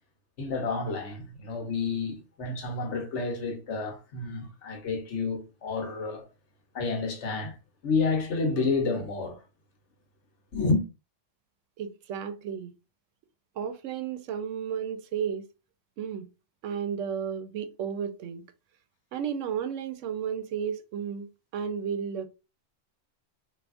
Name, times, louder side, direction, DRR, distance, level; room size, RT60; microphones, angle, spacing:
voice 1, 0.4-6.3 6.7-7.6 7.8-9.4 10.5-10.8, left 4 dB, 70° left, 1.2 m, -29 dB
voice 2, 11.8-12.7 13.6-15.5 16.0-16.3 16.6-18.4 19.1-22.3, right 7 dB, 80° right, 0.9 m, -33 dB
3.4 x 2.7 x 2.5 m
omnidirectional pair, 1.3 m